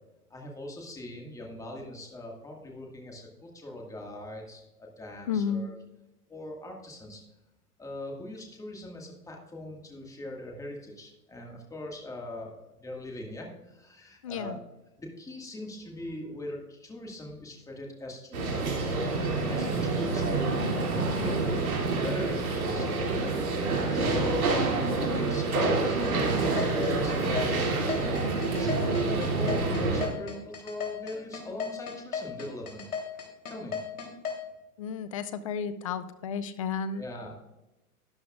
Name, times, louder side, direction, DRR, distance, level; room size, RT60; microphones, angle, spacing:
voice 1, 0.3-5.7 6.3-7.2 7.8-14.6 15.0-22.9 23.9-32.9 33.1-33.8 36.9-37.3, left 1 dB, 5° left, 0 dB, 1.8 m, -41 dB
voice 2, 5.3-5.7 14.2-14.6 34.8-37.0, left 6 dB, 25° left, 14 dB, 0.4 m, -32 dB
sound 1, 18.3-30.1, right 3 dB, 65° right, 2.8 m, -27 dB
sound 2, 26.0-34.4, left 6 dB, 70° left, 3.5 m, -35 dB
12.5 x 11.0 x 2.5 m, 0.96 s
hypercardioid pair, 120°, 46 cm